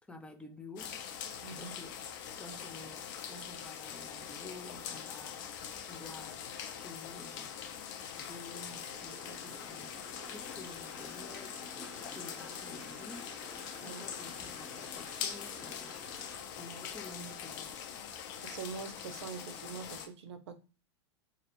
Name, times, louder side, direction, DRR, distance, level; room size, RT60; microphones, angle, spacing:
voice 1, 0.1-1.0 1.6-2.1 2.4-5.4 5.9-6.4 6.8-7.5 8.2-11.6 11.9-13.4 13.8-16.0 16.6-17.7, left 2 dB, 10° left, 0.4 m, -50 dB
sound 1, 0.8-20.1, left 8 dB, 50° left, 0.7 m, -43 dB
voice 2, 1.4-1.8 13.8-14.0 18.4-20.6, right 6 dB, 85° right, 0.6 m, -44 dB
Train, 8.8-16.4, equal, 15° right, 0.9 m, -52 dB
2.4 x 2.0 x 2.9 m
supercardioid pair, 140°, 14 cm